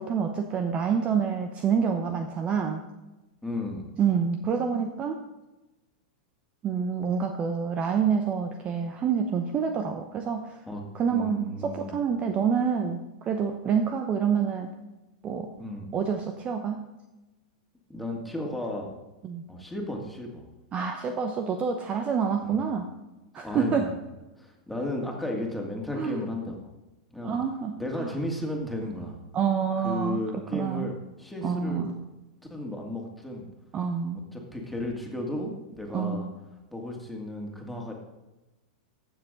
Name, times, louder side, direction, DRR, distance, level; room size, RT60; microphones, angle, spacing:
voice 1, 0.0-2.8 4.0-5.2 6.6-10.6 10.9-14.7 15.2-15.5 15.9-16.9 19.2-19.4 20.7-22.9 23.3-23.9 26.0-26.2 27.2-28.1 29.3-30.9 31.4-32.0 33.7-34.2 35.9-36.3, right 6 dB, 30° right, 6 dB, 0.8 m, -27 dB
voice 2, 3.4-3.9 10.7-10.8 11.1-11.9 15.6-15.9 17.9-18.9 19.5-20.4 22.4-22.6 23.4-24.0 24.4-26.7 27.1-27.4 27.8-29.2 29.8-31.9 32.5-33.5 34.3-36.3 36.7-37.9, left 1 dB, ahead, -1 dB, 2.3 m, -34 dB
14.5 x 6.8 x 3.9 m, 1.0 s
hypercardioid pair, 105°, 4 cm